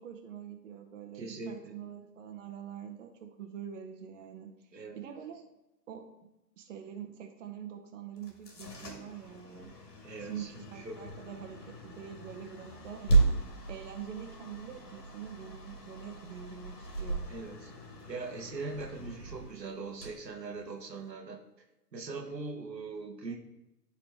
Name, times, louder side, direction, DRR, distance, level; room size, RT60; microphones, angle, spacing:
voice 1, 0.0-5.4 5.9-6.1 6.6-9.7 10.2-13.2 13.7-17.3, right 9 dB, 50° right, 4 dB, 1.0 m, -45 dB
voice 2, 1.1-1.7 4.7-5.0 10.0-10.5 10.8-11.0 17.2-17.7 18.1-21.4 21.9-23.4, right 3 dB, 90° right, 4 dB, 1.2 m, -41 dB
sound 1, 8.2-21.1, right 3 dB, 70° left, 2.1 m, -35 dB
10.5 x 4.0 x 3.5 m, 0.96 s
figure-of-eight pair, 130°, 49 cm